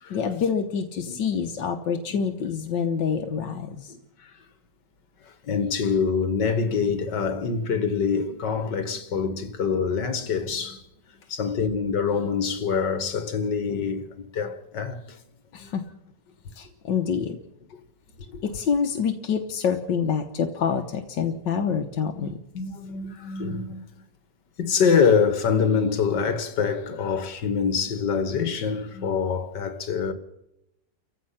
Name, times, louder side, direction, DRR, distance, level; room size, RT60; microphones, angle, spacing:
voice 1, 0.1-3.9 15.5-15.8 16.6-17.4 18.4-22.4, left 6 dB, 90° left, 1.8 m, -26 dB
voice 2, 5.4-10.8 11.3-15.2 15.6-15.7 18.3-18.4 21.7-21.8 22.2-24.0 24.6-30.1, left 6 dB, 70° left, 2.3 m, -25 dB
30.0 x 15.0 x 5.9 m
omnidirectional pair, 1.9 m